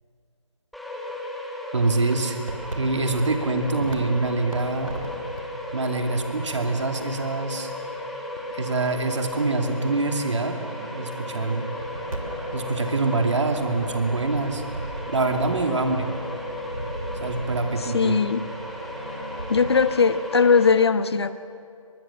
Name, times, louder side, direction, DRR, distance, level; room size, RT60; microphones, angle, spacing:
sound 1, 0.7-20.7, left 1 dB, ahead, 0.7 m, -35 dB
voice 1, 1.7-2.4 2.8-4.9 5.7-7.7 8.5-10.6 10.8-11.7 12.5-14.6 15.1-16.1 17.2-18.2, right 3 dB, 55° right, 5 dB, 2.7 m, -25 dB
sound 2, 2.1-19.9, right 2 dB, 75° right, 3.2 m, -39 dB
voice 2, 17.8-18.5 19.5-21.4, left 5 dB, 50° left, 14 dB, 1.0 m, -20 dB
24.0 x 22.0 x 7.3 m, 2.5 s
figure-of-eight pair, 155°, 17 cm